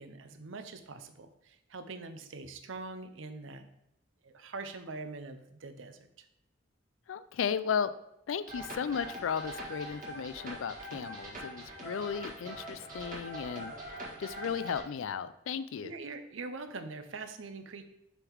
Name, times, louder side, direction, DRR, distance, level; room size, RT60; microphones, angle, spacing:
voice 1, 0.0-3.7 4.2-6.3 15.8-17.8, right 3 dB, 80° right, 9 dB, 0.6 m, -43 dB
voice 2, 7.1-7.9 8.3-13.7 14.2-15.9, left 7 dB, 85° left, 14 dB, 0.4 m, -35 dB
sound 1, 8.5-14.8, right 1 dB, 40° right, 1.6 m, -43 dB
6.9 x 3.6 x 4.5 m, 0.81 s
head